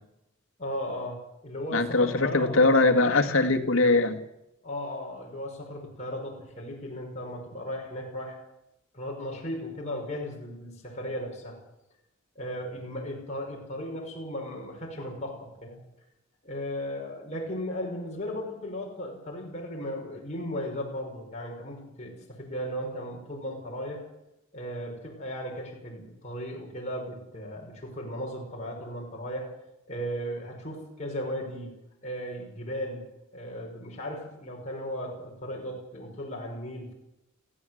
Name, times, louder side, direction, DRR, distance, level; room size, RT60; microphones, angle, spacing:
voice 1, 0.6-2.6 4.6-8.4 8.9-11.6 12.4-15.8 16.4-24.0 24.5-29.5 29.9-36.9, equal, 35° left, -2 dB, 5.8 m, -36 dB
voice 2, 1.7-4.2, left 3 dB, 75° left, 4 dB, 2.1 m, -22 dB
23.0 x 15.5 x 8.0 m, 0.88 s
head